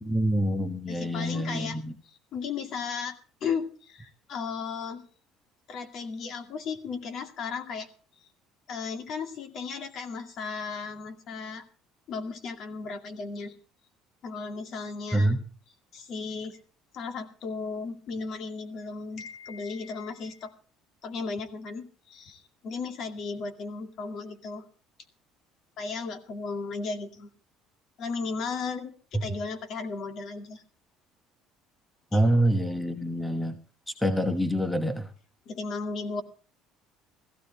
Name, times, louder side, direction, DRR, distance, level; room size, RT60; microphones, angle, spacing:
voice 1, 0.0-1.9 15.1-15.4 32.1-33.6 33.9-35.1, right 1 dB, 5° left, 9 dB, 1.1 m, -26 dB
voice 2, 0.9-1.8 2.0-5.0 5.7-7.9 8.7-11.6 12.1-13.6 14.2-15.4 15.9-16.6 16.9-20.5 21.0-24.6 25.8-27.3 28.0-30.6 32.1-32.2 35.5-36.2, left 4 dB, 45° left, 7 dB, 2.2 m, -35 dB
15.5 x 15.5 x 4.1 m, 0.40 s
cardioid pair, 155°, 0 cm